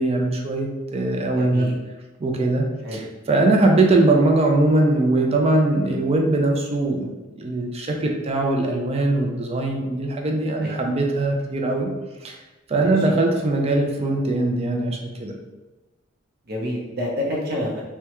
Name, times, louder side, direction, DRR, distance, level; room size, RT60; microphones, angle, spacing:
voice 1, 0.0-1.7 2.2-3.0 3.3-11.9 12.2-12.4 12.7-15.3, right 2 dB, 30° right, 2 dB, 0.4 m, -21 dB
voice 2, 1.4-1.7 2.8-3.1 10.6-10.7 12.8-13.2 16.5-17.8, left 1 dB, 50° right, -3 dB, 0.8 m, -28 dB
3.4 x 2.2 x 2.9 m, 1.1 s
head